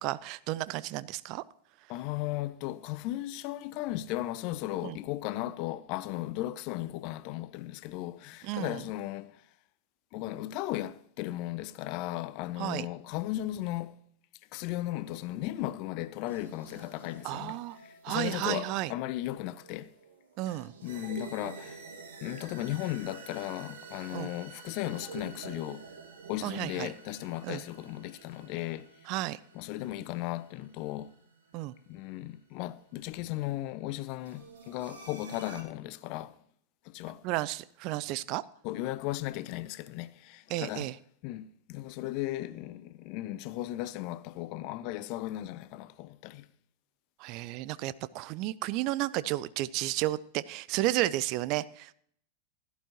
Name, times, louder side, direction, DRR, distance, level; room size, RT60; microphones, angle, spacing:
voice 1, 0.0-1.4 4.8-5.0 8.4-8.8 12.6-12.9 17.2-17.8 18.0-18.9 20.4-20.7 24.1-24.3 26.4-26.9 27.4-27.6 29.1-29.4 31.5-31.7 37.2-38.4 40.5-41.0 47.2-51.9, right 16 dB, 40° right, 0.4 m, -32 dB
voice 2, 1.9-9.4 10.1-14.0 14.5-19.9 20.5-20.6 20.8-21.8 22.2-25.9 26.3-28.9 29.5-31.1 31.9-36.4 36.8-37.2 38.6-40.9 41.2-46.5, left 15 dB, 45° left, 0.6 m, -36 dB
sound 1, 16.3-32.4 34.2-35.6, right 5 dB, 60° right, 1.9 m, -49 dB
16.5 x 11.5 x 2.9 m
figure-of-eight pair, 90°, 0 cm